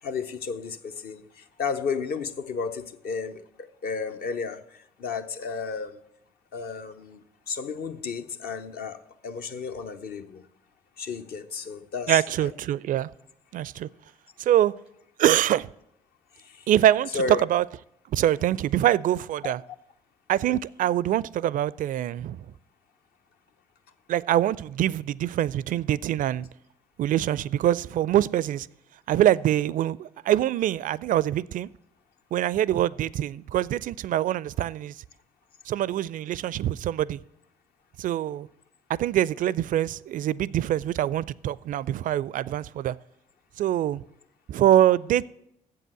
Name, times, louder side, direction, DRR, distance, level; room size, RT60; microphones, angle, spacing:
voice 1, 0.0-6.0 6.5-7.2 7.5-10.4 11.0-12.5 16.4-16.6 17.1-17.4 19.4-19.5, left 5 dB, 55° left, 0.8 m, -33 dB
voice 2, 12.1-13.1 13.5-13.9 14.4-14.7 15.2-15.7 16.7-17.2 17.5-17.6 18.1-19.6 20.3-22.5 24.1-26.5 27.0-28.7 29.1-31.7 32.3-34.9 35.7-37.2 38.0-38.5 38.9-43.0 43.6-44.0 44.5-45.2, right 12 dB, 45° right, 0.4 m, -24 dB
7.7 x 7.6 x 7.7 m
figure-of-eight pair, 50°, 19 cm